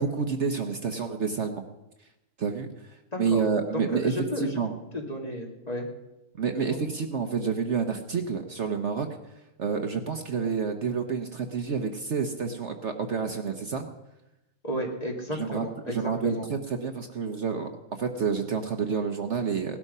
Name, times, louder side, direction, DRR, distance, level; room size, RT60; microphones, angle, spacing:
voice 1, 0.0-1.6 2.4-4.7 6.4-9.1 9.6-13.9 15.3-19.8, right 5 dB, 55° right, 6 dB, 1.2 m, -29 dB
voice 2, 3.1-3.4 3.9-4.5 4.9-5.9 6.7-6.8 14.6-16.5, equal, 25° left, 0 dB, 2.5 m, -33 dB
18.0 x 12.0 x 5.5 m, 0.94 s
omnidirectional pair, 1.5 m